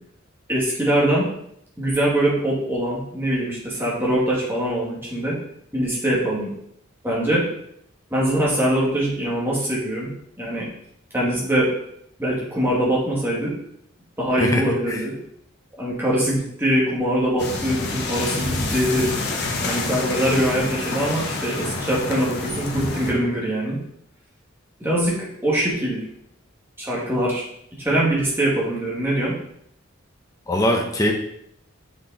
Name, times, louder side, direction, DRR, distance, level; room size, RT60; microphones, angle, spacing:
voice 1, 0.5-1.3 1.8-5.4 5.7-6.5 7.0-7.4 8.1-10.1 10.4-10.7 11.1-11.7 12.2-13.5 14.2-15.1 15.8-19.1 19.6-23.8 24.8-26.1 26.8-27.4 27.8-29.3, right 1 dB, 10° right, -5 dB, 2.3 m, -23 dB
voice 2, 14.4-15.0 30.5-31.1, left 1 dB, 15° left, 1 dB, 1.0 m, -22 dB
skiing and snowboarding, 17.4-23.1, left 2 dB, 55° left, 1.4 m, -27 dB
6.4 x 6.1 x 4.2 m, 0.72 s
head